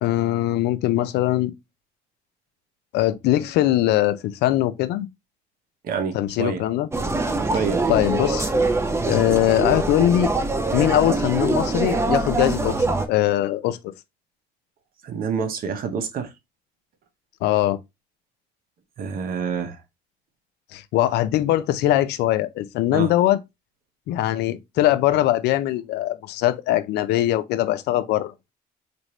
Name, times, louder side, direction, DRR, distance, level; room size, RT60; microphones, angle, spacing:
voice 1, 0.0-1.5 2.9-5.1 6.1-6.9 7.5-7.6 7.9-8.5 9.1-10.3 10.7-13.8 17.4-17.8 20.7-23.4 24.1-28.3, left 14 dB, 85° left, 0.5 m, -21 dB
voice 2, 5.8-6.6 7.5-7.9 15.0-16.3 19.0-19.8 22.9-23.1, right 6 dB, 60° right, 0.9 m, -27 dB
sound 1, 6.9-13.1, right 3 dB, 15° right, 0.6 m, -23 dB
4.3 x 2.6 x 3.1 m
cardioid pair, 110°, 17 cm